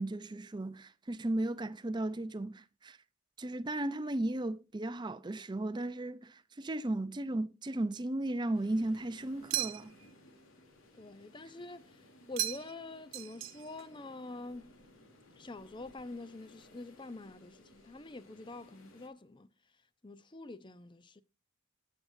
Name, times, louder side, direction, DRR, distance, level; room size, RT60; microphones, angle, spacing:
voice 1, 0.0-3.0 3.4-9.9, right 1 dB, 20° right, 0.5 m, -35 dB
sound 1, 8.5-19.1, left 1 dB, 80° left, 3.0 m, -59 dB
sound 2, 9.5-10.1 12.4-12.9 13.1-13.9, right 15 dB, 70° right, 0.7 m, -37 dB
voice 2, 10.9-12.0 12.3-14.8 15.4-19.5 20.0-21.2, left 2 dB, 25° left, 0.6 m, -46 dB
19.0 x 7.2 x 2.6 m
head